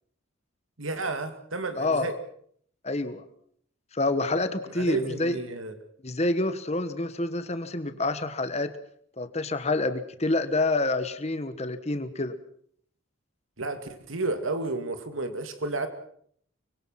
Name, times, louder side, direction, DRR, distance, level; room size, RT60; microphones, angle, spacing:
voice 1, 0.8-2.1 4.7-5.7 13.6-15.9, right 2 dB, 90° right, 8 dB, 2.5 m, -31 dB
voice 2, 1.8-2.1 2.8-3.2 3.9-5.4 6.0-8.7 9.2-12.3, left 2 dB, 35° left, 11 dB, 1.3 m, -27 dB
25.0 x 22.0 x 5.8 m, 0.63 s
head